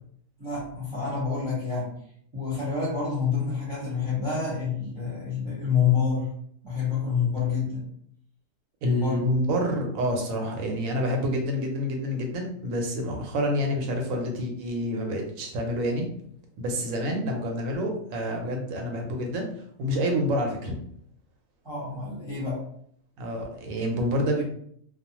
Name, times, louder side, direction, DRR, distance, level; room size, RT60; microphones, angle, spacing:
voice 1, 0.4-1.9 2.3-6.3 6.6-7.8 8.8-9.2 21.6-22.6, left 6 dB, 25° right, -7 dB, 0.7 m, -27 dB
voice 2, 8.8-16.0 16.6-19.5 19.8-20.8 23.2-24.4, equal, 80° right, 2 dB, 1.0 m, -28 dB
2.4 x 2.1 x 2.8 m, 0.66 s
omnidirectional pair, 1.4 m